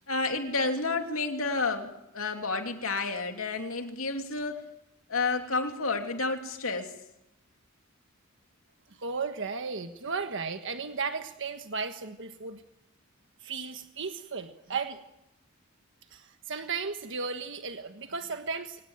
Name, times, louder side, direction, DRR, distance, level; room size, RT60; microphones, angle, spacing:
voice 1, 0.1-4.6 5.1-6.9, left 3 dB, 75° left, 5 dB, 3.0 m, -30 dB
voice 2, 9.0-12.6 13.4-15.0 16.1-18.8, right 5 dB, 60° right, 7 dB, 1.5 m, -35 dB
25.0 x 19.0 x 9.0 m, 0.84 s
head